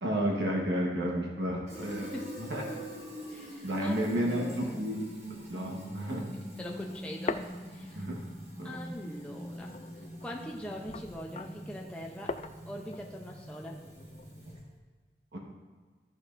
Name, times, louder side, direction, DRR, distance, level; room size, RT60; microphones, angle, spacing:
voice 1, 0.0-2.1 2.4-2.6 3.6-5.1 5.5-6.3 7.9-8.2 8.6-8.8 15.3-15.4, equal, 80° right, -1 dB, 1.3 m, -31 dB
Fill (with liquid), 1.7-14.8, equal, 40° right, 1.6 m, -45 dB
voice 2, 2.0-2.4 3.3-4.8 6.6-7.4 7.7-8.1 8.6-9.7 10.2-12.4 12.7-13.8, equal, 5° left, -2 dB, 0.7 m, -42 dB
sound 1, 6.5-8.3 8.7-14.6, left 4 dB, 40° left, 0.3 m, -43 dB
14.0 x 6.3 x 2.6 m, 1.5 s
head